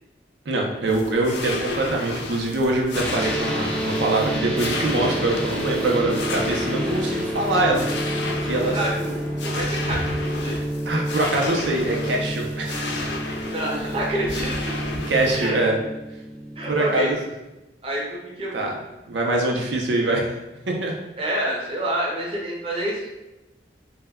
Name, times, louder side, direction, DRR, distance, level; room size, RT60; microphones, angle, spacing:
voice 1, 0.5-8.8 10.9-13.1 15.1-15.8 16.7-17.2 18.5-18.7 19.1-20.3 20.7-20.9, right 2 dB, 85° right, 0 dB, 0.5 m, -24 dB
sound 1, 0.9-15.5, left 2 dB, 80° left, 0.4 m, -33 dB
sound 2, 2.9-17.1, right 1 dB, 5° left, 0.3 m, -29 dB
voice 2, 8.5-9.2 9.4-10.6 13.5-14.8 15.3-15.6 16.6-17.1 17.8-18.7 21.2-23.1, right 1 dB, 30° right, -4 dB, 0.6 m, -28 dB
2.2 x 2.1 x 3.4 m, 0.99 s
head